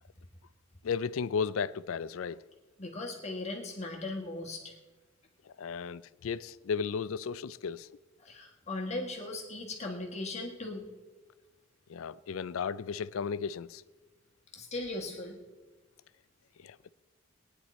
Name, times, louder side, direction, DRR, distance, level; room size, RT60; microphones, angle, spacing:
voice 1, 0.8-2.4 5.5-7.9 11.9-13.8 16.6-16.8, left 6 dB, 85° left, 0.4 m, -34 dB
voice 2, 2.8-4.7 8.2-10.9 14.5-15.4, left 2 dB, 35° left, 1.5 m, -38 dB
19.0 x 9.7 x 4.2 m
head